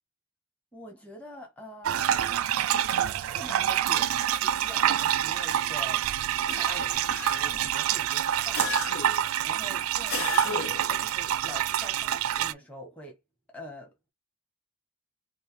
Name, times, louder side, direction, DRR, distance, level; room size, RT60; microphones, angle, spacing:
voice 1, 0.7-2.4 3.2-13.2 13.5-14.1, equal, 5° left, 1.3 m, -45 dB
sound 1, 1.8-12.5, right 11 dB, 85° right, 0.3 m, -27 dB
sound 2, 6.5-7.7 8.5-9.3 10.1-10.9, left 5 dB, 85° left, 0.8 m, -35 dB
5.3 x 2.1 x 3.3 m
head